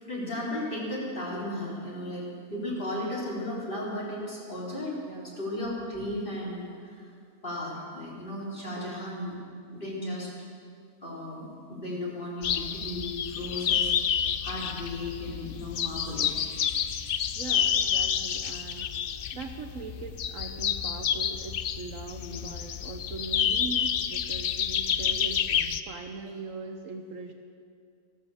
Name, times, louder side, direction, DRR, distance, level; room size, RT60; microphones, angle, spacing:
voice 1, 0.0-5.0 5.4-7.0 7.4-9.4 9.7-10.3 11.0-13.9 14.4-16.3 22.2-22.4 25.5-25.6, left 1 dB, 35° left, -5 dB, 4.0 m, -35 dB
voice 2, 5.1-5.4 8.8-9.0 17.3-18.9 19.3-25.6 25.9-27.3, right 4 dB, 60° right, 5 dB, 1.1 m, -40 dB
sound 1, 12.4-25.8, left 8 dB, 80° left, 0.5 m, -29 dB
15.0 x 12.5 x 7.0 m, 2.3 s
omnidirectional pair, 1.7 m